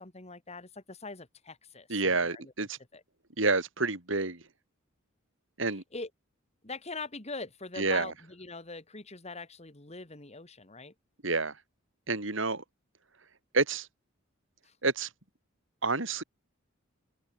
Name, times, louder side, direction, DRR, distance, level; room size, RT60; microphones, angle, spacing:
voice 1, 0.0-2.5 2.9-3.0 5.9-6.1 6.6-10.9 14.6-14.7, left 3 dB, 30° left, 2.3 m, -42 dB
voice 2, 1.9-2.8 3.4-4.4 5.6-5.8 7.8-8.1 11.2-11.6 12.1-12.6 13.5-13.9 14.8-15.1 15.8-16.2, right 3 dB, 65° right, 3.4 m, -28 dB
open air
head